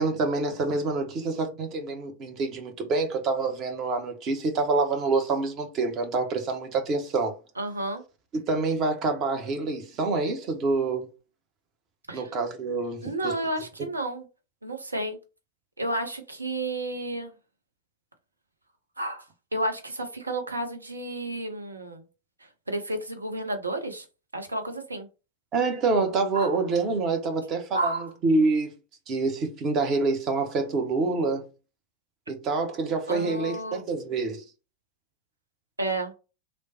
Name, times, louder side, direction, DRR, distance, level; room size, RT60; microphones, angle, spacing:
voice 1, 0.0-7.3 8.3-11.1 12.1-13.4 25.5-28.7 29.1-31.5 32.3-34.4, right 3 dB, 35° right, 0.7 m, -27 dB
voice 2, 7.6-8.0 12.1-12.2 13.0-14.3 14.6-15.2 15.8-17.3 19.0-19.2 19.5-22.0 22.7-24.0 24.3-25.1 26.3-26.5 27.7-28.1 33.1-33.8 35.8-36.1, right 1 dB, 80° right, 0.6 m, -31 dB
3.2 x 2.0 x 2.7 m
figure-of-eight pair, 90°, 0 cm